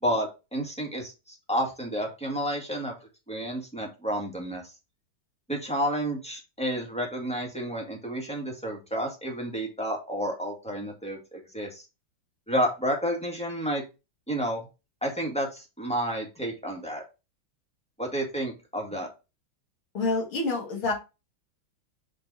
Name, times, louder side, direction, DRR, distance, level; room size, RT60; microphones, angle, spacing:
voice 1, 0.0-2.9 3.3-4.6 5.5-11.8 12.5-13.8 14.3-14.7 15.0-17.0 18.0-19.1, equal, 5° left, 0 dB, 1.8 m, -30 dB
voice 2, 19.9-20.9, left 3 dB, 75° left, 0 dB, 2.9 m, -27 dB
6.8 x 3.9 x 4.1 m, 0.27 s
omnidirectional pair, 2.3 m